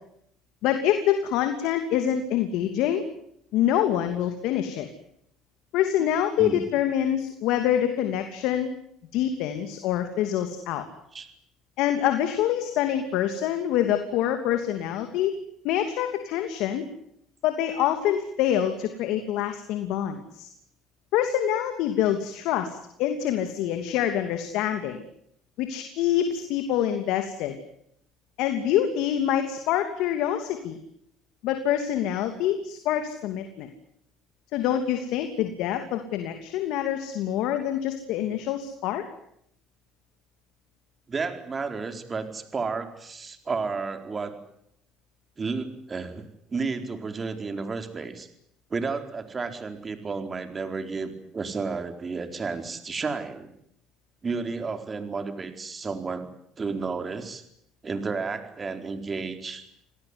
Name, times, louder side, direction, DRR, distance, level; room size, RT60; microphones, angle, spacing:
voice 1, 0.6-3.1 3.5-4.9 5.7-8.7 9.1-10.9 11.8-15.3 15.6-16.8 17.4-20.5 21.1-25.0 25.6-27.6 28.4-30.8 31.4-33.7 34.5-39.0, left 10 dB, 70° left, 7 dB, 2.9 m, -26 dB
voice 2, 41.1-44.3 45.4-46.2 46.5-48.3 48.7-53.5 54.2-56.3 56.6-57.4 57.8-59.7, right 4 dB, 30° right, 7 dB, 4.3 m, -32 dB
28.0 x 18.5 x 9.8 m, 0.73 s
supercardioid pair, 90°, 0 cm